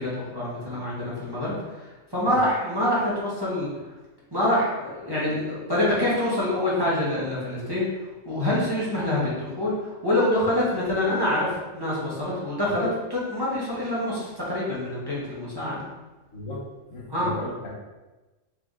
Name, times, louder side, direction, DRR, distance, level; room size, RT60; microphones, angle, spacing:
voice 1, 0.0-3.7 4.3-7.8 8.2-15.9 17.1-17.3, left 1 dB, 20° right, -8 dB, 1.3 m, -26 dB
voice 2, 16.9-17.8, left 2 dB, 85° left, -4 dB, 1.6 m, -36 dB
3.9 x 3.4 x 3.7 m, 1.1 s
omnidirectional pair, 1.3 m